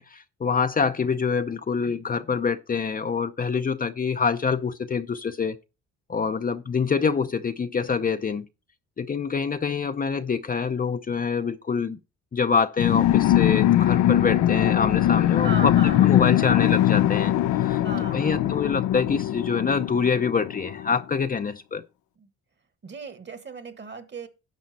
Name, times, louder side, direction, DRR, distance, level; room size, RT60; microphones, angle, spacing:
voice 1, 0.0-5.6 6.1-8.5 9.0-12.0 12.3-15.7 16.0-17.8 18.1-21.8, left 5 dB, 30° left, 0.6 m, -25 dB
sound 1, 12.8-20.9, left 13 dB, 75° left, 0.6 m, -21 dB
voice 2, 15.4-16.1 16.3-16.6 17.8-18.6 22.2-22.3 22.8-24.3, right 4 dB, 35° right, 1.5 m, -37 dB
10.5 x 6.2 x 4.1 m
cardioid pair, 90°, 30 cm